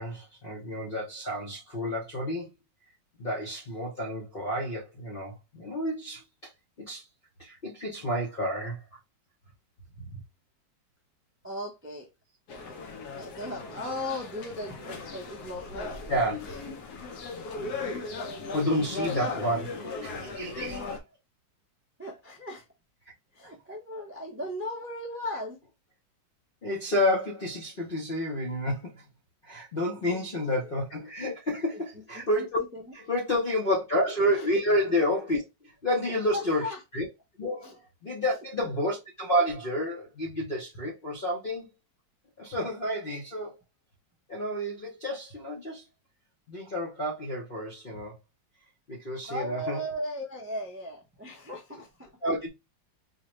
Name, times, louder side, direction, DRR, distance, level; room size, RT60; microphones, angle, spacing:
voice 1, 0.0-2.5 3.2-6.2 6.8-7.0 7.4-8.8 16.1-16.4 18.5-21.0 23.4-23.5 26.6-28.9 29.4-32.6 33.1-35.4 35.8-36.7 36.9-37.0 37.4-37.7 38.0-41.7 42.4-43.5 44.3-45.8 46.5-48.1 48.9-49.8 52.2-52.5, equal, 45° left, 0.7 m, -30 dB
voice 2, 11.4-12.1 13.2-16.6 22.0-22.6 23.3-25.6 30.1-30.4 31.7-31.8 32.1-32.5 32.7-32.8 34.3-34.5 36.0-36.8 37.6-37.7 38.6-38.7 49.3-52.1, equal, 15° right, 0.4 m, -37 dB
sound 1, 12.5-21.0, left 3 dB, 65° left, 1.1 m, -37 dB
4.7 x 2.3 x 3.0 m
omnidirectional pair, 2.1 m